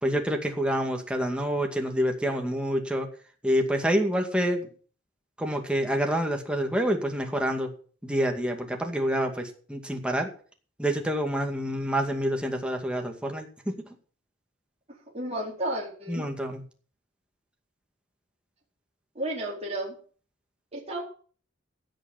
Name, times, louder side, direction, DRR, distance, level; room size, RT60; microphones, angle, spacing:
voice 1, 0.0-3.1 3.4-4.7 5.4-7.7 8.0-10.3 10.8-13.7 16.1-16.6, equal, 5° right, 3 dB, 2.2 m, -27 dB
voice 2, 15.1-16.3 19.1-19.9 20.7-21.0, right 1 dB, 30° right, -4 dB, 4.4 m, -32 dB
16.5 x 6.5 x 7.5 m, 0.43 s
head